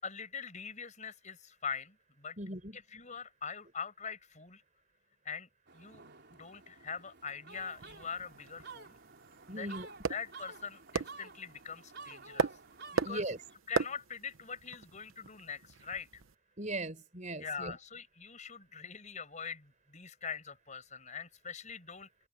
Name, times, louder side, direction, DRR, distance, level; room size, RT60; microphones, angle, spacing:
voice 1, 0.0-2.4 2.7-4.6 5.3-6.0 6.3-8.9 9.5-9.8 10.1-12.5 12.9-13.2 13.7-16.2 17.4-22.1, left 6 dB, 35° left, 5.4 m, -43 dB
voice 2, 2.4-2.8 9.5-9.9 13.0-13.4 16.6-17.8, right 2 dB, 35° right, 4.8 m, -38 dB
sound 1, 5.7-13.6, right 4 dB, 55° right, 4.6 m, -52 dB
sound 2, 7.5-16.3, right 4 dB, 75° right, 0.9 m, -39 dB
head